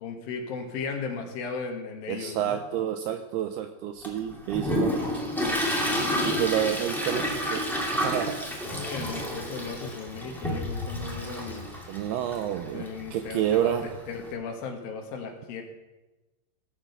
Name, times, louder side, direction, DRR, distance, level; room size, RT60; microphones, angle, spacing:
voice 1, 0.0-2.6 6.7-6.9 8.7-11.7 12.7-13.7 14.1-15.6, left 5 dB, 65° left, 4 dB, 2.7 m, -36 dB
voice 2, 2.1-5.3 6.2-7.7 7.9-8.5 11.9-12.9 13.1-13.9, right 10 dB, 80° right, 7 dB, 2.3 m, -29 dB
Toilet flush, 4.0-14.3, equal, 5° left, 0.3 m, -30 dB
16.5 x 7.5 x 6.6 m, 1.1 s
omnidirectional pair, 5.2 m